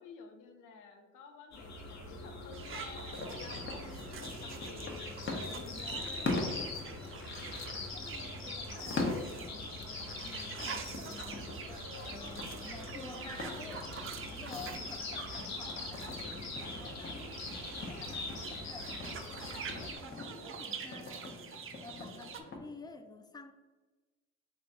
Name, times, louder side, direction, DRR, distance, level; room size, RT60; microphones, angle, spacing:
voice 1, 0.0-6.5 11.6-14.0 14.6-15.0 20.0-20.3 22.0-22.3, left 4 dB, 85° left, 5 dB, 0.6 m, -52 dB
sound 1, 1.5-20.0, left 3 dB, 65° left, 0.9 m, -43 dB
sound 2, 2.5-22.4, right 6 dB, 45° right, 0.5 m, -46 dB
sound 3, 3.1-22.6, left 2 dB, 40° left, 0.8 m, -43 dB
voice 2, 7.9-11.7 12.1-13.9 14.2-23.5, left 3 dB, 15° left, 7 dB, 0.3 m, -51 dB
3.7 x 2.3 x 4.0 m, 1.2 s
cardioid pair, 90°, 30 cm